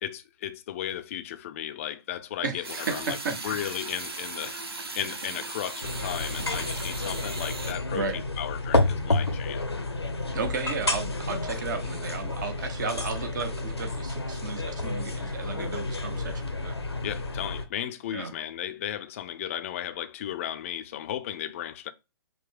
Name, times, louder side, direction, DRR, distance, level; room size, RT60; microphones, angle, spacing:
voice 1, 0.0-3.2 3.4-4.6 4.9-9.7 17.0-21.9, left 11 dB, 35° left, 0.4 m, -35 dB
voice 2, 2.4-3.6 7.9-8.2 10.3-16.8 18.1-18.3, right 5 dB, 50° right, 0.8 m, -34 dB
sound 1, 2.6-7.7, right 3 dB, 70° right, 1.0 m, -37 dB
sound 2, 5.8-17.7, left 2 dB, 85° left, 0.6 m, -30 dB
5.1 x 2.1 x 3.5 m
figure-of-eight pair, 125°, 13 cm